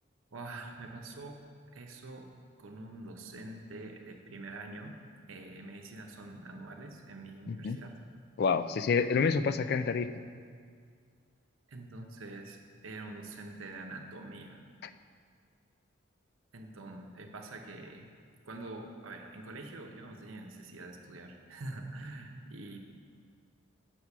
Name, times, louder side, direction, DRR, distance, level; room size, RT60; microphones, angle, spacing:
voice 1, 0.3-1.4 1.7-2.3 2.6-5.0 5.3-7.9 11.7-14.6 16.5-18.1 18.5-22.8, right 2 dB, 85° right, 3 dB, 0.8 m, -45 dB
voice 2, 7.5-7.8 8.4-10.2, left 5 dB, 50° left, 11 dB, 0.3 m, -28 dB
8.2 x 6.1 x 5.9 m, 2.1 s
head